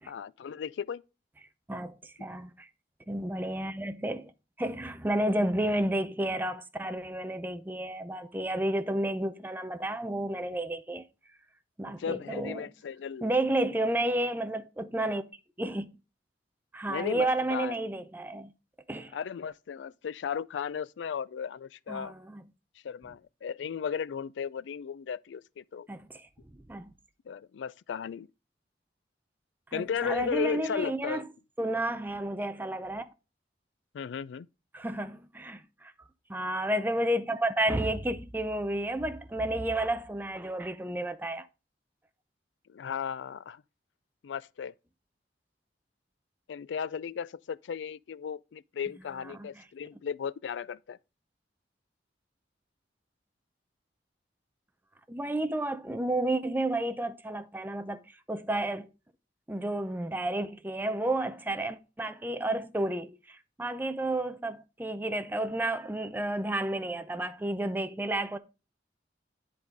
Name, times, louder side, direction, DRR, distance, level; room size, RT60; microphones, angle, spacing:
voice 1, 0.1-1.0 11.9-13.3 16.9-17.8 19.1-22.1 22.8-25.9 27.3-28.3 29.7-31.2 33.9-34.5 42.7-43.6 44.2-44.7 46.5-51.0, left 7 dB, 80° left, 0.4 m, -35 dB
voice 2, 1.7-2.7 3.1-4.3 4.6-11.0 11.8-12.7 13.2-15.2 15.6-15.9 16.7-18.5 18.9-19.2 21.9-22.4 25.9-26.9 29.7-31.3 31.6-33.0 34.7-35.9 36.3-41.5 49.2-49.6 55.1-58.9 59.5-68.4, right 1 dB, 10° right, 0.5 m, -31 dB
10.5 x 3.7 x 4.7 m
head